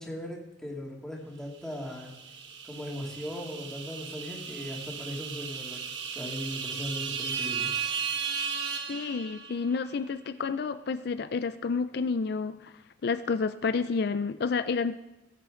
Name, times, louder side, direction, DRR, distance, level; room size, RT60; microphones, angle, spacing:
voice 1, 0.0-2.1 2.6-5.8 6.1-7.7, equal, 5° left, -3 dB, 2.7 m, -38 dB
sound 1, 1.7-9.7, right 6 dB, 85° right, 1.4 m, -35 dB
voice 2, 8.9-12.7 13.0-15.0, left 5 dB, 60° left, 11 dB, 0.4 m, -30 dB
19.5 x 8.3 x 3.8 m, 0.98 s
head